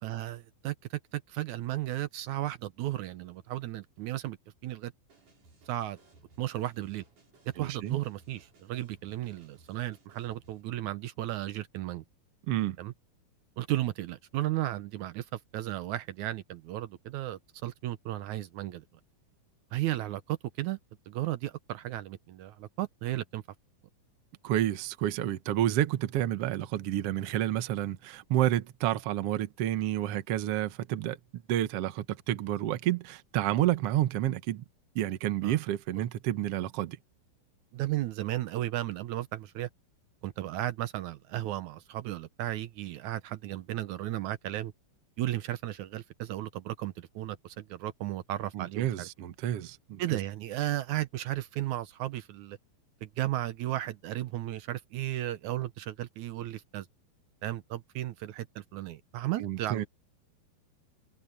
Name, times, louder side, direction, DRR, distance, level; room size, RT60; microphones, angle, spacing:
voice 1, 0.0-4.4 4.6-4.9 5.7-6.0 6.4-7.0 7.6-12.0 12.8-12.9 13.6-18.8 19.7-20.8 21.1-23.4 35.4-35.5 37.7-39.7 40.2-44.7 45.2-49.1 50.0-52.6 53.0-56.8 57.4-59.9, right 14 dB, 75° right, 1.8 m, -34 dB
sound 1, 5.1-10.6, right 3 dB, 55° right, 7.5 m, -61 dB
voice 2, 7.6-8.0 12.5-12.8 24.4-31.2 31.5-34.6 34.9-37.0 48.5-50.2 59.4-59.8, right 13 dB, 90° right, 1.3 m, -30 dB
omnidirectional pair, 4.3 m